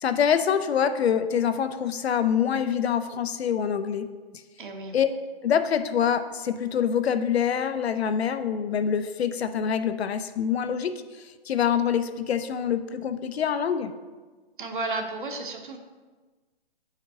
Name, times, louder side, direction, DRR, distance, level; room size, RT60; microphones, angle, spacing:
voice 1, 0.0-4.1 4.9-5.1 5.4-10.9 11.5-13.9, left 8 dB, 85° left, 10 dB, 0.6 m, -25 dB
voice 2, 4.6-5.0 14.6-15.8, right 3 dB, 55° right, 5 dB, 0.8 m, -33 dB
7.3 x 5.0 x 2.7 m, 1.3 s
hypercardioid pair, 180°, 31 cm